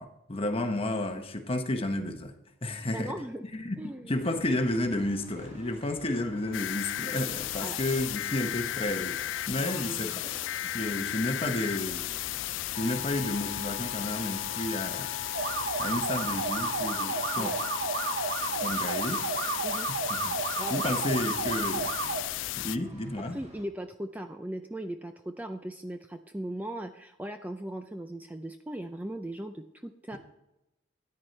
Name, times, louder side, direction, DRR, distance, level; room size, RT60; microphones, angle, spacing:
voice 1, 0.0-2.3 2.6-3.1 3.5-10.2 10.6-12.1 12.8-15.1 15.8-17.5 18.6-19.2 20.1-20.4 20.7-21.9 22.6-23.4 30.1-30.2, left 1 dB, 30° left, 6 dB, 1.0 m, -32 dB
voice 2, 2.9-3.4 3.8-4.1 7.6-7.8 9.7-10.2 17.4-17.6 19.6-19.9 20.6-20.9 23.3-30.2, right 1 dB, 10° right, 6 dB, 0.4 m, -38 dB
sound 1, 4.2-23.7, equal, 35° right, 1.8 m, -51 dB
sound 2, 6.5-22.8, left 13 dB, 70° left, 0.3 m, -34 dB
sound 3, 15.3-22.2, right 4 dB, 65° right, 0.9 m, -32 dB
13.5 x 9.5 x 3.2 m, 0.92 s
head